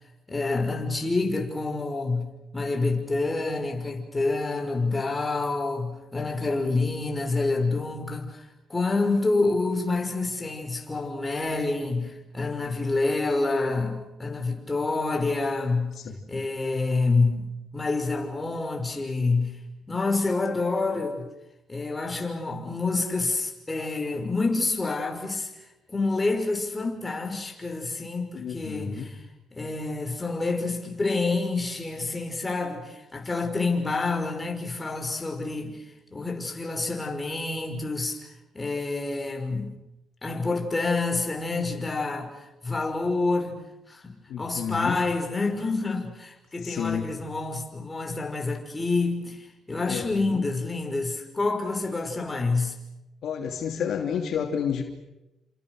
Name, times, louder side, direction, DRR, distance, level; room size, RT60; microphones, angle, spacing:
voice 1, 0.3-2.3 2.5-8.4 8.7-16.0 16.3-19.6 19.9-21.3 21.7-25.5 25.9-29.2 29.5-35.8 36.1-38.2 38.5-39.7 40.2-42.3 42.6-43.6 43.9-52.7, left 3 dB, 20° left, 6.0 m, -27 dB
voice 2, 28.3-29.1 44.3-45.0 46.6-47.1 49.9-50.4 53.2-54.8, left 7 dB, 70° left, 3.0 m, -30 dB
29.5 x 27.0 x 6.7 m
cardioid pair, 90°, 0 cm